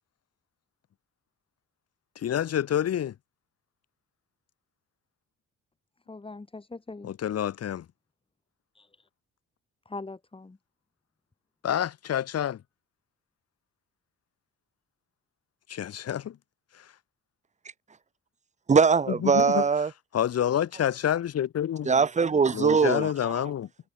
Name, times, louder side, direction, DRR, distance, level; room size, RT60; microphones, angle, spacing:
voice 1, 2.2-3.1 7.0-7.8 11.6-12.6 15.7-16.4 19.2-19.6 20.1-21.9 22.5-23.7, left 10 dB, 55° left, 1.2 m, -28 dB
voice 2, 6.1-7.1 8.7-9.1 9.9-10.6, left 3 dB, 20° left, 2.1 m, -41 dB
voice 3, 18.7-19.9 21.8-23.4, right 5 dB, 25° right, 0.8 m, -22 dB
cardioid pair, 90°, 30 cm